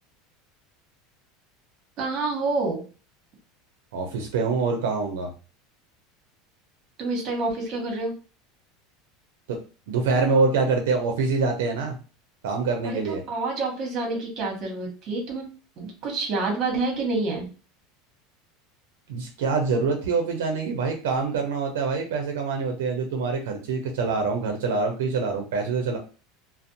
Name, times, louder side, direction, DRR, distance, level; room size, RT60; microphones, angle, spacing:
voice 1, 2.0-2.8 7.0-8.1 12.8-15.4 15.8-17.5, right 3 dB, 40° right, 1 dB, 1.1 m, -28 dB
voice 2, 3.9-5.3 9.5-9.6 9.9-12.0 12.4-13.2 19.1-26.0, right 4 dB, 90° right, 3 dB, 0.5 m, -25 dB
2.5 x 2.0 x 2.7 m, 0.35 s
supercardioid pair, 140°, 0 cm